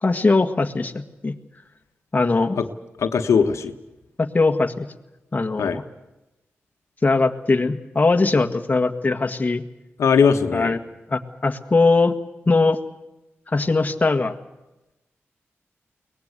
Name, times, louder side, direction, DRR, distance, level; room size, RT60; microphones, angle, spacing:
voice 1, 0.0-1.3 2.1-2.6 4.2-4.9 5.3-5.8 7.0-9.6 10.5-10.8 11.1-12.1 12.4-12.8 13.5-14.3, left 3 dB, 35° left, 6 dB, 1.7 m, -20 dB
voice 2, 3.0-3.7 5.6-5.8 10.0-10.8, left 6 dB, 80° left, 6 dB, 1.3 m, -19 dB
23.0 x 19.0 x 8.2 m, 1.0 s
cardioid pair, 70°, 5 cm